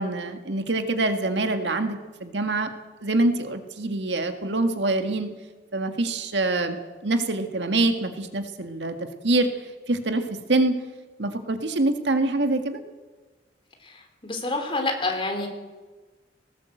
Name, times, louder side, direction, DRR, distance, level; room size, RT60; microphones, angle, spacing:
voice 1, 0.0-2.7 3.0-5.3 5.7-6.8 7.0-9.5 9.9-10.2 10.5-10.8 11.2-12.8, right 2 dB, 75° right, 7 dB, 1.8 m, -25 dB
voice 2, 14.2-15.5, left 2 dB, 30° left, 4 dB, 3.4 m, -27 dB
18.5 x 18.5 x 7.9 m, 1.3 s
head